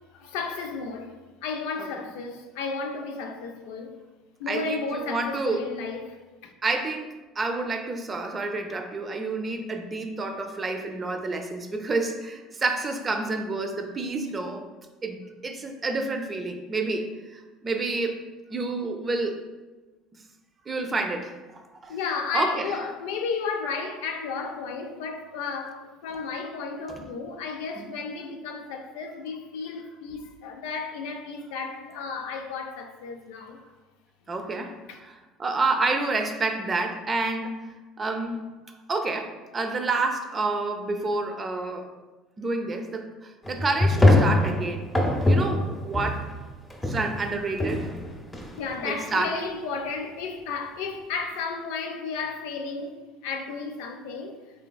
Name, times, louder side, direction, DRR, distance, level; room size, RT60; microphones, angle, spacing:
voice 1, 0.1-1.1 1.4-3.9 4.4-6.5 21.9-33.6 34.9-35.0 48.6-53.0 53.2-54.4, left 4 dB, 75° left, 0.4 m, -33 dB
voice 2, 4.5-5.6 6.6-7.1 7.4-14.6 15.0-18.2 18.5-19.4 20.7-21.9 22.3-22.8 26.9-27.1 27.8-27.9 34.3-37.6 38.0-38.4 38.9-41.9 42.4-44.8 45.3-46.2 46.8-47.9 48.8-49.3, right 3 dB, 30° right, 0.5 m, -29 dB
sound 1, 43.4-46.4 46.7-49.1, left 2 dB, 20° left, 0.7 m, -23 dB
3.8 x 3.3 x 2.2 m
hypercardioid pair, 70°, 0 cm